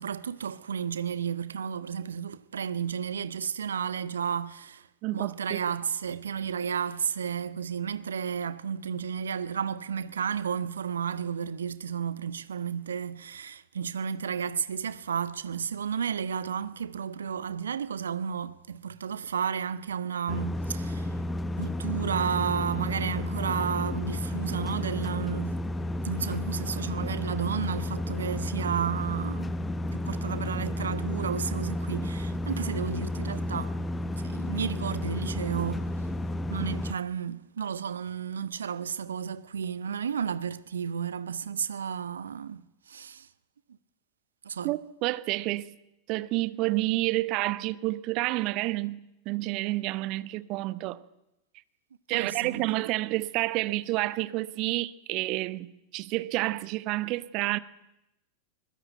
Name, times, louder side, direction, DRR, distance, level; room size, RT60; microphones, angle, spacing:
voice 1, 0.0-4.9 5.1-21.1 21.6-25.6 26.0-29.5 29.9-33.8 34.2-35.8 36.5-43.3 44.4-44.7 52.1-52.7, right 7 dB, 70° right, 1.0 m, -32 dB
voice 2, 5.0-5.6 44.6-45.7 46.1-49.0 49.3-51.0 52.1-57.6, right 19 dB, 40° right, 1.0 m, -29 dB
sound 1, 20.3-36.9, left 1 dB, 15° left, 1.1 m, -32 dB
21.5 x 20.5 x 9.1 m
figure-of-eight pair, 90°, 0 cm